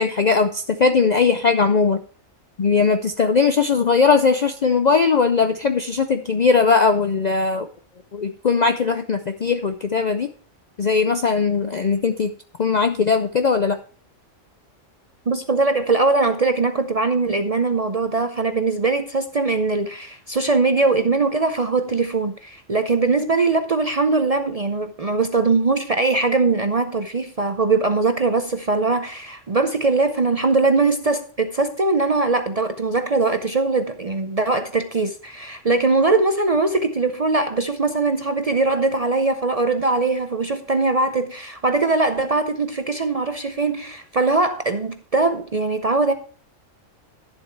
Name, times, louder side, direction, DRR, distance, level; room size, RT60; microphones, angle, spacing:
voice 1, 0.0-2.0 2.6-7.7 8.1-10.3 10.8-12.3 12.6-13.8, left 5 dB, 55° left, 0.5 m, -19 dB
voice 2, 15.3-46.1, right 3 dB, 40° right, 0.5 m, -21 dB
10.5 x 7.4 x 4.6 m
omnidirectional pair, 1.3 m